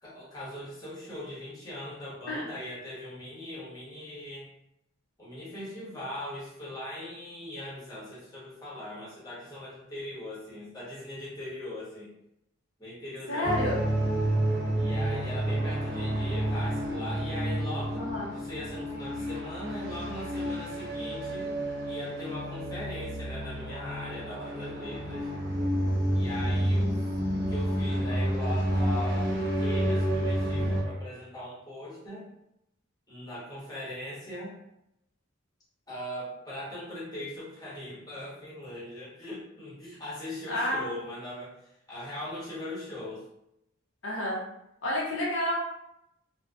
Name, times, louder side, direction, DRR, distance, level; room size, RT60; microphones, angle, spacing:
voice 1, 0.0-4.5 5.2-12.1 12.8-13.6 14.8-18.1 18.3-21.5 21.8-25.3 26.1-27.0 27.3-32.3 33.1-34.6 35.9-43.3, left 1 dB, 20° left, -8 dB, 0.9 m, -40 dB
voice 2, 13.3-13.8 18.0-18.3 40.5-40.9 44.0-44.4 44.8-45.5, left 1 dB, 80° left, -4 dB, 0.7 m, -29 dB
sound 1, 13.4-30.8, right 1 dB, 55° right, 0.8 m, -29 dB
2.5 x 2.2 x 2.3 m, 0.82 s
head